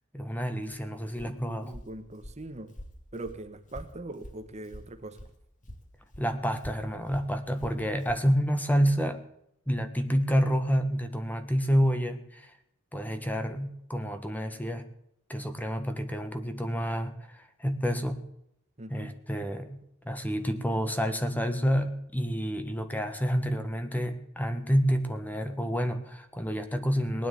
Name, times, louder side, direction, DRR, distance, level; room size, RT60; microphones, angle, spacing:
voice 1, 0.1-1.7 6.2-9.2 9.7-12.5 12.9-14.9 15.3-18.2 18.9-27.3, equal, 10° left, 7 dB, 1.5 m, -29 dB
Walk footsteps, 0.6-5.4 5.6-8.3, equal, 40° left, 2.6 m, -46 dB
voice 2, 1.4-2.7 3.1-5.2 18.8-19.1, right 2 dB, 35° right, 8 dB, 1.5 m, -41 dB
19.5 x 10.0 x 6.9 m, 0.75 s
head